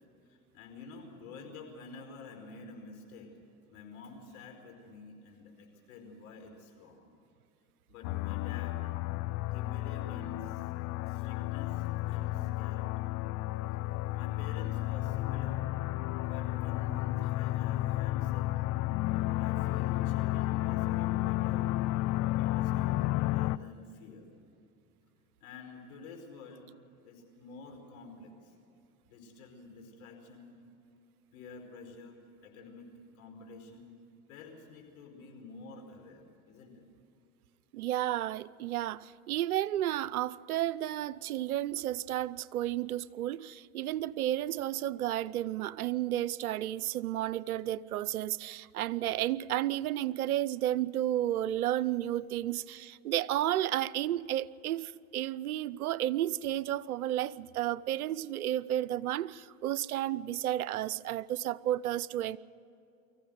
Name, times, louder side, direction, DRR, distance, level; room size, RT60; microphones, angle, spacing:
voice 1, 0.2-3.3 3.7-7.1 7.9-8.8 9.5-10.7 11.1-13.2 14.1-15.6 16.2-18.5 19.4-21.7 22.2-24.3 25.4-26.7 27.0-28.5 29.0-30.6 31.3-32.9 33.1-34.0 34.3-36.8, left 3 dB, 75° left, 3 dB, 5.1 m, -49 dB
sound 1, 8.0-23.6, left 17 dB, 45° left, 0.6 m, -32 dB
voice 2, 37.7-62.4, right 13 dB, 90° right, 20 dB, 0.7 m, -32 dB
24.5 x 15.5 x 7.9 m, 2.7 s
hypercardioid pair, 90°, 42 cm